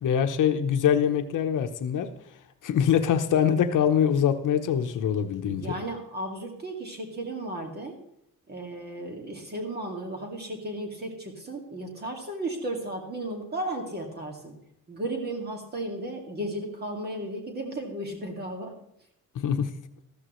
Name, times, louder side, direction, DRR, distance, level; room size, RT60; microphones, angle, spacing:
voice 1, 0.0-2.1 2.6-5.7 19.3-19.7, left 8 dB, 70° left, 8 dB, 0.9 m, -24 dB
voice 2, 5.4-8.0 8.5-14.5 14.9-18.7, right 1 dB, 30° right, 1 dB, 2.1 m, -34 dB
14.0 x 13.5 x 3.1 m, 0.76 s
wide cardioid pair, 180°, 33 cm